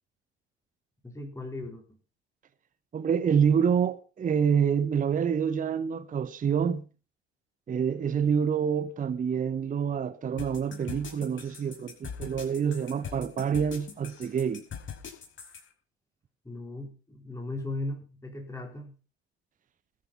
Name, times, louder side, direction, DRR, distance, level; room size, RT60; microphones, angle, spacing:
voice 1, 1.0-1.8 16.4-18.9, left 2 dB, 10° left, 4.4 m, -37 dB
voice 2, 2.9-6.9 7.7-14.6, right 7 dB, 25° right, 0.9 m, -27 dB
sound 1, 10.4-15.6, left 7 dB, 35° left, 5.6 m, -41 dB
21.0 x 7.6 x 5.7 m
figure-of-eight pair, 60°, 33 cm